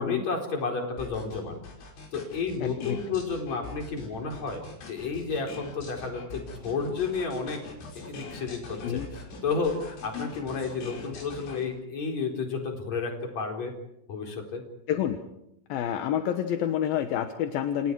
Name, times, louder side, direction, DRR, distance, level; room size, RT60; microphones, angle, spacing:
voice 1, 0.0-1.6 2.1-7.6 8.0-13.7 14.1-14.6, left 4 dB, 40° left, 2 dB, 5.2 m, -32 dB
sound 1, 1.0-11.6, left 3 dB, 85° left, 7.9 m, -43 dB
voice 2, 2.6-3.0 8.8-9.1 10.1-10.3 14.9-15.2 15.7-17.9, left 10 dB, 65° left, 7 dB, 2.6 m, -28 dB
29.0 x 29.0 x 4.8 m, 0.83 s
omnidirectional pair, 5.2 m